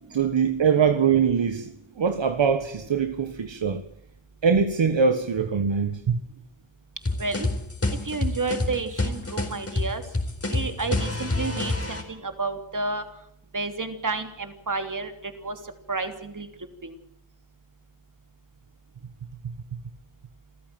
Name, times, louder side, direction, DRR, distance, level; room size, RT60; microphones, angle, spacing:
voice 1, 0.1-3.8 4.4-6.2 19.4-19.5, right 6 dB, 65° right, 1.6 m, -23 dB
sound 1, 7.1-12.0, left 2 dB, 30° left, 4.3 m, -27 dB
voice 2, 7.2-7.5 8.0-10.0 10.5-13.0 13.5-15.6 15.9-16.5 16.8-16.9, right 3 dB, 40° right, 3.1 m, -30 dB
27.5 x 14.5 x 7.7 m
wide cardioid pair, 95°, 48 cm